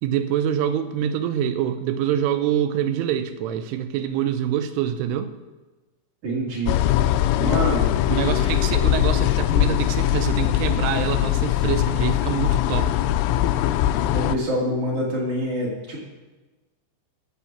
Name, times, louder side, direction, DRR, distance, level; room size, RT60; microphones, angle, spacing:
voice 1, 0.0-5.3 8.1-13.2, right 9 dB, 85° right, 10 dB, 3.3 m, -25 dB
voice 2, 6.2-6.8 7.4-7.9 8.3-8.6 14.1-16.0, equal, 50° right, -4 dB, 2.9 m, -26 dB
sound 1, 6.7-14.4, left 13 dB, 90° left, 3.1 m, -21 dB
15.0 x 7.1 x 5.9 m, 1.2 s
omnidirectional pair, 5.5 m